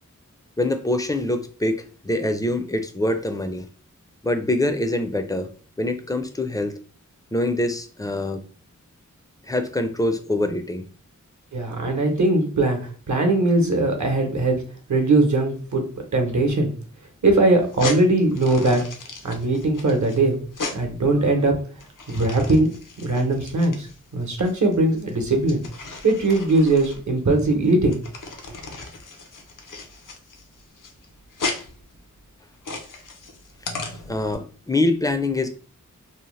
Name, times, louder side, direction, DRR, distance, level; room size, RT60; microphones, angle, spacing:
voice 1, 0.6-3.7 4.2-5.5 5.8-6.8 7.3-8.4 9.5-10.8 34.1-35.5, left 1 dB, 10° left, 7 dB, 0.4 m, -24 dB
voice 2, 11.5-14.6 14.9-15.8 16.1-16.7 17.2-18.8 19.2-20.4 20.7-21.6 22.1-23.9 24.1-25.7 26.0-28.0, right 2 dB, 65° right, 2 dB, 0.8 m, -20 dB
sound 1, 17.6-34.3, left 3 dB, 80° left, 0.6 m, -36 dB
2.7 x 2.0 x 3.0 m, 0.39 s
wide cardioid pair, 50°, 31 cm